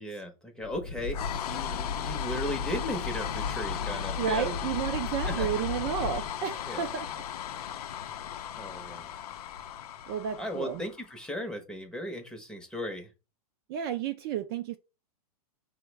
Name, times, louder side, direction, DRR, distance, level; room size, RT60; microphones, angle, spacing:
voice 1, 0.0-4.6 5.2-5.8 6.7-6.9 8.6-9.1 10.4-13.1, left 1 dB, 5° left, 0.6 m, -37 dB
sound 1, 0.6-11.1, left 7 dB, 80° left, 0.5 m, -35 dB
voice 2, 4.2-7.2 10.1-10.8 13.7-14.8, right 8 dB, 40° right, 0.4 m, -32 dB
4.6 x 2.1 x 4.5 m
hypercardioid pair, 145°, 19 cm